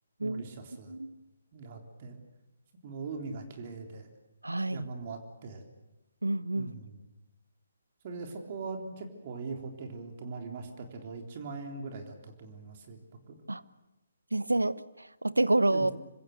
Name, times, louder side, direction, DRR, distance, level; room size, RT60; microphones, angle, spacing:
voice 1, 0.2-1.0 1.5-2.2 2.8-4.1 4.7-5.7 6.5-7.0 8.0-13.0 13.3-13.4 15.7-15.9, right 4 dB, 35° right, 3 dB, 3.6 m, -41 dB
voice 2, 4.4-4.9 6.2-6.8 13.5-13.6 14.3-15.9, right 2 dB, 80° right, 17 dB, 1.0 m, -28 dB
26.5 x 25.0 x 6.8 m, 0.98 s
figure-of-eight pair, 140°, 0 cm